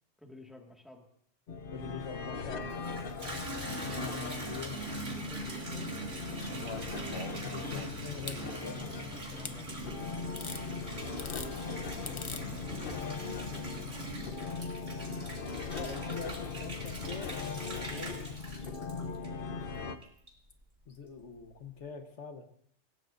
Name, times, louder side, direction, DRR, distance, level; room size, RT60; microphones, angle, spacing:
voice 1, 0.2-1.1 5.1-6.2 8.8-10.1 11.9-12.8 13.2-15.4, left 1 dB, ahead, 1 dB, 1.8 m, -53 dB
sound 1, 1.5-20.0, left 5 dB, 55° left, 1.0 m, -40 dB
voice 2, 1.7-3.1 4.0-4.8 7.2-8.9 12.3-12.5 15.7-17.3 17.9-19.6 20.9-22.5, left 5 dB, 75° left, 6 dB, 1.5 m, -44 dB
Water tap faucet / Bathtub (filling or washing), 2.6-19.6 20.0-20.6, right 2 dB, 60° right, 3.1 m, -42 dB
sound 2, 6.4-8.4 9.4-9.6 10.4-10.6 11.1-11.5 12.1-12.4 13.7-13.8, left 4 dB, 30° left, 0.6 m, -43 dB
26.0 x 15.5 x 2.6 m, 0.67 s
omnidirectional pair, 1.2 m